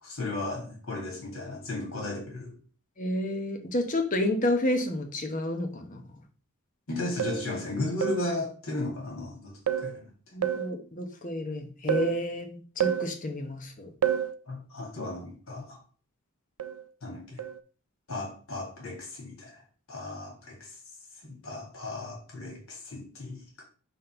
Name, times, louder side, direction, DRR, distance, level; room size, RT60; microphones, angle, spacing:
voice 1, 0.0-2.5 6.9-9.5 9.8-10.1 14.5-15.8 17.0-17.4 18.1-19.5 19.9-20.6 21.2-23.6, left 2 dB, 70° left, 2.3 m, -35 dB
voice 2, 3.0-6.0 10.3-13.9, left 1 dB, 35° left, 1.0 m, -30 dB
sound 1, 7.2-7.5 8.0-8.3 9.7-10.0 10.4-10.7 11.9-12.2 12.8-13.1 14.0-14.3 16.6-16.9 17.4-17.6, right 10 dB, 85° right, 0.4 m, -28 dB
4.2 x 4.0 x 5.6 m
head